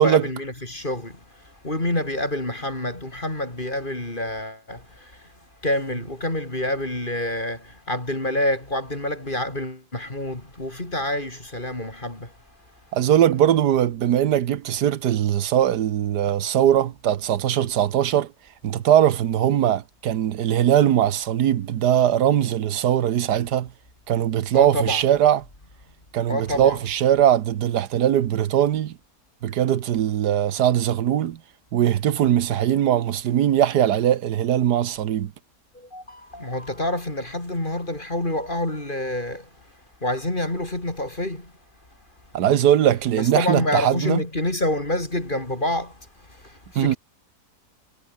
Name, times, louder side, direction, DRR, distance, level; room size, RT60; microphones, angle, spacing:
voice 1, 0.0-12.4 24.5-25.0 26.3-26.8 35.7-39.5 40.0-41.5 43.2-47.0, left 1 dB, 30° left, 4.3 m, -27 dB
voice 2, 12.9-18.3 18.6-23.7 24.1-25.4 26.1-29.0 29.4-31.4 31.7-35.3 42.3-44.2 46.7-47.0, right 10 dB, 85° right, 1.5 m, -20 dB
omnidirectional pair, 1.7 m